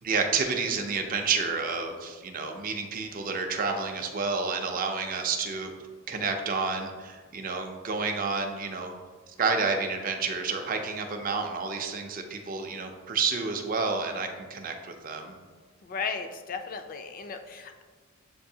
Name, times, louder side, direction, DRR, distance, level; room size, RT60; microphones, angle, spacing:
voice 1, 0.0-5.7 6.1-8.9 9.4-15.4, right 4 dB, 40° right, 4 dB, 0.4 m, -30 dB
voice 2, 15.8-17.8, left 5 dB, 40° left, 7 dB, 0.3 m, -35 dB
7.4 x 2.6 x 2.7 m, 1.4 s
head